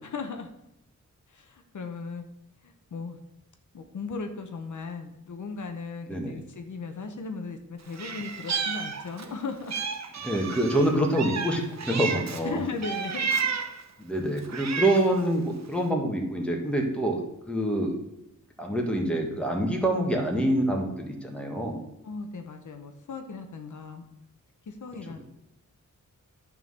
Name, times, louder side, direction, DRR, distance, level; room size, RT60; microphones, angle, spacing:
voice 1, 0.0-0.5 1.3-2.2 2.6-3.2 3.7-9.7 12.4-13.3 22.0-24.0 24.7-25.3, left 4 dB, 65° left, 6 dB, 0.9 m, -37 dB
voice 2, 6.1-6.4 10.2-12.6 14.0-17.2 17.5-17.9 18.6-21.8, right 1 dB, 5° left, 1 dB, 1.6 m, -26 dB
Meow, 7.9-9.3 9.7-12.4 12.8-13.8 14.4-15.2, right 6 dB, 55° right, 0.9 m, -31 dB
10.5 x 3.8 x 6.5 m, 0.85 s
wide cardioid pair, 115°, 32 cm